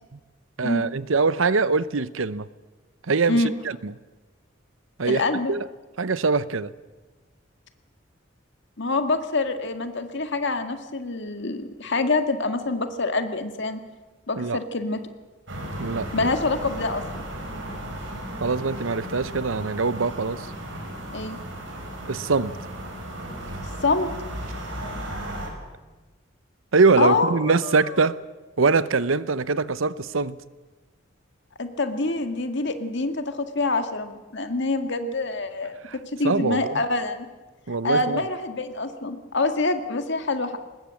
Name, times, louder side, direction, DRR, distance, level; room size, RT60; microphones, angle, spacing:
voice 1, 0.6-2.5 3.1-3.4 3.8-3.9 5.0-5.2 5.5-5.7 6.0-6.7 14.4-14.6 15.8-16.3 18.4-20.5 22.1-22.5 26.7-28.2 28.6-30.4 35.8-35.9 36.2-36.8 37.7-38.2, right 4 dB, 90° right, 16 dB, 0.8 m, -23 dB
voice 2, 5.0-5.5 8.8-13.8 14.3-15.0 16.1-17.0 21.1-21.4 23.8-24.1 27.0-27.3 27.6-28.0 31.6-37.3 37.8-40.6, left 3 dB, 60° left, 7 dB, 1.9 m, -26 dB
sound 1, 15.5-25.5, right 1 dB, 70° right, 6.7 m, -35 dB
23.5 x 20.5 x 7.7 m, 1.2 s
head